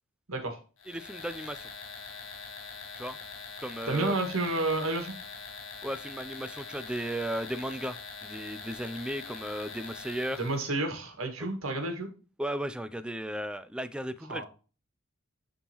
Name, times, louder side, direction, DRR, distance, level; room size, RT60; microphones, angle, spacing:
voice 1, 0.3-0.6 3.9-5.1 10.4-12.1 14.3-14.4, right 2 dB, 75° right, 1.8 m, -30 dB
sound 1, 0.8-10.7, left 5 dB, 70° left, 1.3 m, -43 dB
voice 2, 0.9-1.7 2.9-3.2 3.6-4.2 5.8-10.4 12.4-14.4, right 1 dB, 5° right, 0.4 m, -35 dB
11.0 x 3.7 x 3.0 m
head